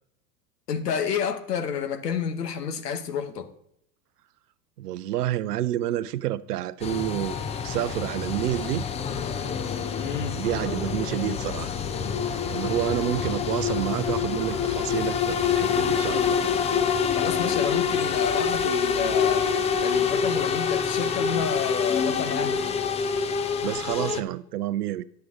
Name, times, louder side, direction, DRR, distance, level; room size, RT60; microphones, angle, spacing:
voice 1, 0.7-3.5 10.0-10.5 17.1-19.5 19.8-22.7, left 7 dB, 85° left, 1.0 m, -30 dB
voice 2, 4.8-7.4 7.6-8.9 10.4-11.7 12.3-16.4 23.6-25.0, right 13 dB, 75° right, 0.6 m, -29 dB
sound 1, 6.8-24.2, left 6 dB, 15° left, 0.4 m, -26 dB
10.5 x 6.7 x 3.6 m
hypercardioid pair, 85°, 46 cm